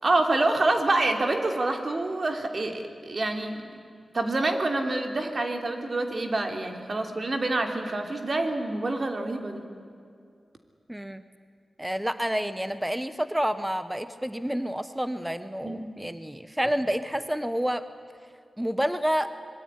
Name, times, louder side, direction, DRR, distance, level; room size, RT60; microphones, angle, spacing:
voice 1, 0.0-3.6 4.1-9.6 15.6-16.0, right 2 dB, 50° right, 4 dB, 3.1 m, -27 dB
voice 2, 10.9-11.2 11.8-17.8 18.6-19.3, equal, 5° right, 11 dB, 1.0 m, -29 dB
25.5 x 22.0 x 9.8 m, 2.3 s
wide cardioid pair, 85°, 0 cm